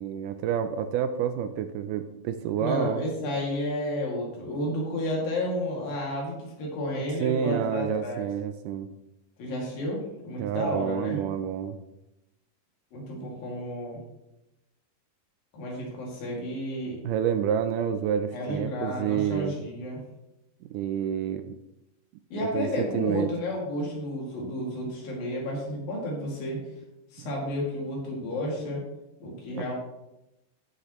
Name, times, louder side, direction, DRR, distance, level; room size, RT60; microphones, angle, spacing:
voice 1, 0.0-3.1 7.2-8.9 10.4-11.8 17.0-19.6 20.7-21.6 22.4-23.3 27.2-27.3 29.6-29.7, right 9 dB, 80° right, 10 dB, 2.0 m, -29 dB
voice 2, 2.6-8.3 9.4-10.0 10.2-11.2 12.9-14.0 15.5-17.0 18.3-20.0 22.3-26.6 27.1-28.8 29.2-29.7, left 1 dB, 85° left, -3 dB, 4.2 m, -31 dB
15.0 x 6.4 x 3.1 m, 0.92 s
omnidirectional pair, 4.0 m